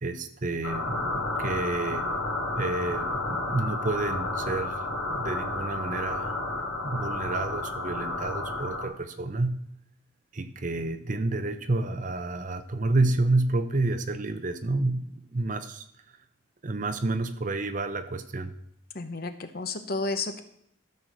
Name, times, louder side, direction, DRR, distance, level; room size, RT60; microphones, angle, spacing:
voice 1, 0.0-2.1 2.6-4.7 5.1-6.4 6.8-9.6 10.3-15.8 16.6-18.5, right 2 dB, 40° right, 10 dB, 0.7 m, -29 dB
sound 1, 0.6-8.9, left 2 dB, 85° left, 2.7 m, -31 dB
voice 2, 18.9-20.4, left 3 dB, 45° left, 9 dB, 0.9 m, -32 dB
12.5 x 4.6 x 6.6 m, 0.71 s
head